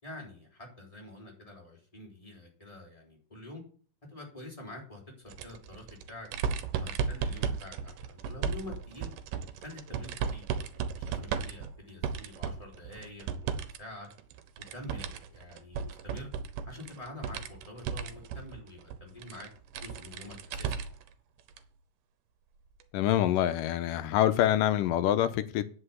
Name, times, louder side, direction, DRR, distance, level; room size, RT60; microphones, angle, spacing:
voice 1, 0.0-3.6 4.1-6.3 6.8-9.1 9.6-14.1 14.7-16.3 16.6-19.5 19.8-20.9, left 1 dB, 10° left, 3.7 m, -47 dB
sound 1, 5.3-13.8 14.1-21.1 21.5-21.6 22.8-22.9, right 6 dB, 80° right, 2.5 m, -35 dB
voice 2, 22.9-25.8, left 12 dB, 85° left, 2.4 m, -26 dB
10.0 x 5.7 x 8.2 m
omnidirectional pair, 3.8 m